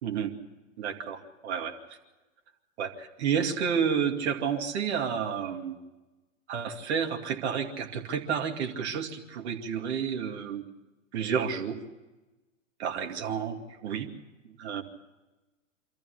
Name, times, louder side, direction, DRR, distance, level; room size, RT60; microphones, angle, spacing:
voice 1, 0.0-0.4 0.8-1.8 2.8-5.8 6.5-10.6 11.1-11.8 12.8-13.6 13.8-14.1 14.6-14.8, right 7 dB, 55° right, 2 dB, 2.5 m, -30 dB
26.0 x 14.0 x 8.4 m, 1.1 s
figure-of-eight pair, 105°, 39 cm